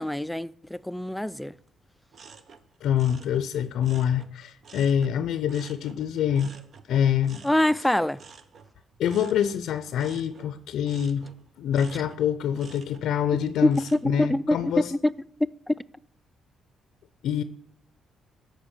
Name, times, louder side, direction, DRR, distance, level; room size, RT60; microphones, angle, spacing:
voice 1, 0.0-1.5 7.4-8.2 13.6-13.7 14.0-14.6 15.0-15.1 15.7-15.8, left 1 dB, 5° left, 0.4 m, -24 dB
sound 1, 2.1-5.2 5.5-14.3 14.7-15.2, right 5 dB, 55° right, 0.9 m, -51 dB
voice 2, 2.8-6.5 6.9-7.4 9.0-11.3 11.6-14.9 17.2-17.4, left 9 dB, 80° left, 0.5 m, -26 dB
13.0 x 5.2 x 7.2 m
cardioid pair, 90°, 0 cm